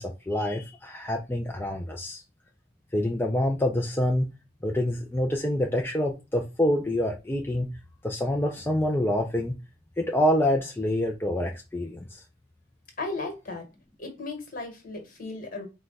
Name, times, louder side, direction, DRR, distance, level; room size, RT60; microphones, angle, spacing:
voice 1, 0.0-2.2 2.9-4.3 4.6-7.7 8.0-9.5 10.0-12.2, left 1 dB, 10° left, 0.4 m, -26 dB
voice 2, 13.0-13.7 14.0-15.7, left 3 dB, 45° left, 1.4 m, -35 dB
4.7 x 2.2 x 3.9 m
head